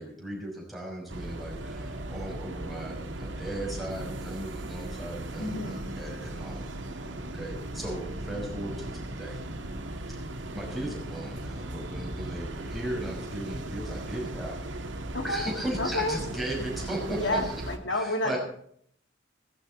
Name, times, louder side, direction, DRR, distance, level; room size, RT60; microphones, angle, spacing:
voice 1, 0.0-6.7 7.0-7.1 7.3-9.4 10.5-14.8 15.2-17.5 17.9-18.4, right 1 dB, ahead, -1 dB, 5.8 m, -37 dB
sound 1, 1.1-17.8, right 1 dB, 75° right, 2.0 m, -37 dB
voice 2, 5.4-5.9 15.1-15.4 15.8-16.2 17.1-18.4, left 1 dB, 75° left, 4 dB, 2.7 m, -30 dB
17.0 x 15.0 x 4.3 m, 0.66 s
head